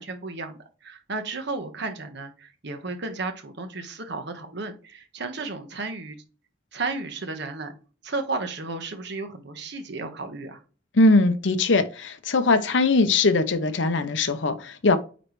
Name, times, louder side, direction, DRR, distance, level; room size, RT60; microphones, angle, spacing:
voice 1, 0.0-6.2 6.7-7.7 8.0-10.6, right 3 dB, 65° right, 1.3 m, -33 dB
voice 2, 10.9-15.0, left 3 dB, 70° left, 0.8 m, -21 dB
9.3 x 3.3 x 3.2 m
head